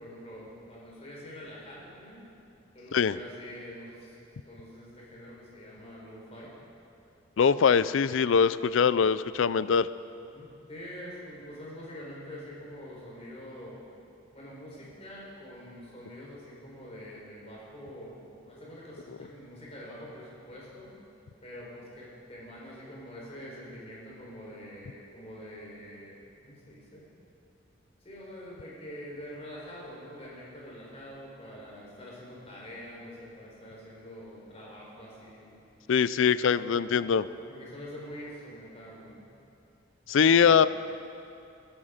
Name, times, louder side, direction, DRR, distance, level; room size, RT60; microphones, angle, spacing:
voice 1, 0.0-2.2 2.7-4.1 4.4-6.5 10.3-13.8 14.3-20.9 21.4-27.1 28.0-35.5 36.3-39.2 40.3-40.5, equal, 30° left, -5 dB, 4.3 m, -45 dB
voice 2, 7.4-9.9 35.9-37.2 40.1-40.7, left 6 dB, 65° left, 16 dB, 0.4 m, -22 dB
21.0 x 11.5 x 5.1 m, 2.7 s
head